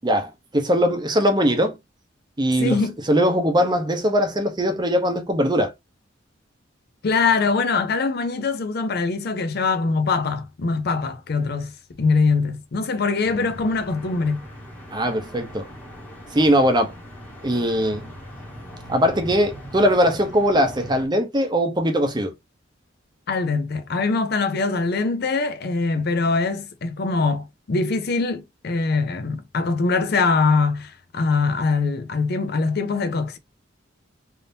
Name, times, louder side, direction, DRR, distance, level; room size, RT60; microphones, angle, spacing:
voice 1, 0.0-1.8 2.4-2.8 3.1-5.7 14.9-15.7 16.3-16.9 17.4-18.1 18.9-22.3, equal, 25° right, 0.7 m, -20 dB
voice 2, 2.6-2.9 7.0-14.5 23.3-33.4, left 4 dB, 55° left, 0.5 m, -23 dB
sound 1, 13.2-21.1, equal, 10° left, 1.1 m, -40 dB
3.5 x 2.7 x 2.6 m
head